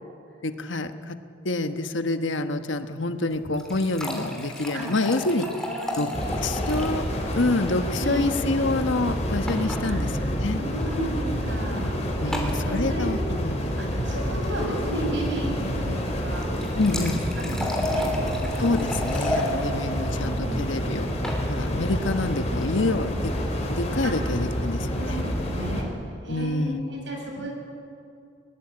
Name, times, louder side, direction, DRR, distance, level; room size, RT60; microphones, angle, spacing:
voice 1, 0.4-1.2 1.4-5.5 5.9-6.1 6.4-7.1 7.3-10.6 12.2-14.1 16.8-17.2 18.6-21.1 21.5-23.4 23.7-25.2 26.2-26.8 27.4-27.5, left 2 dB, 75° left, 9 dB, 1.3 m, -27 dB
sound 1, 3.3-7.0 7.3-7.4 7.7-7.8 9.5-9.8 10.8-11.0 12.3-12.6 16.4-19.5 20.9-21.4, left 1 dB, 5° left, 3.2 m, -32 dB
voice 2, 4.7-5.1 5.4-6.4 8.0-8.7 9.9-10.0 10.6-12.0 12.2-12.3 12.6-13.1 13.8-16.5 17.4-18.1 19.3-19.4 20.2-21.0 24.0-24.1 24.9-25.9 26.2-27.5, equal, 70° right, 1 dB, 7.0 m, -34 dB
sound 2, 6.1-25.8, equal, 35° left, 3.6 m, -28 dB
21.5 x 20.0 x 8.8 m, 2.6 s
head